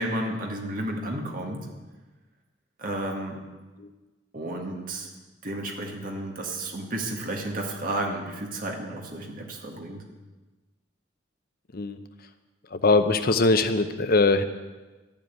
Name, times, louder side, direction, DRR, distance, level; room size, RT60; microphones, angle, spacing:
voice 1, 0.0-1.7 2.8-3.4 4.3-5.1 5.4-10.0, right 1 dB, 50° right, 1 dB, 1.9 m, -32 dB
voice 2, 12.7-14.4, left 3 dB, 50° left, 9 dB, 0.8 m, -21 dB
12.5 x 7.6 x 9.2 m, 1.2 s
head